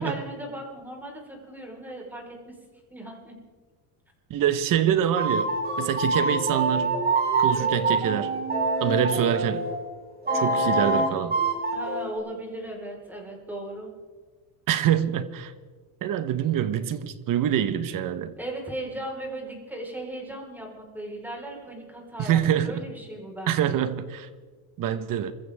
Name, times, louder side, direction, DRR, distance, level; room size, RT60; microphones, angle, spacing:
voice 1, 0.0-2.6 2.9-3.4 11.7-13.9 18.4-23.8, right 1 dB, 5° right, 4.6 m, -37 dB
voice 2, 4.3-5.5 5.8-7.0 7.4-8.3 8.8-9.6 10.3-11.4 14.7-15.5 16.0-18.3 22.2-22.8 23.5-24.3 24.8-25.3, right 10 dB, 50° right, 1.3 m, -25 dB
sound 1, 5.2-9.7 10.3-12.1, right 3 dB, 20° right, 4.9 m, -25 dB
27.0 x 14.5 x 3.6 m
cardioid pair, 115°, 42 cm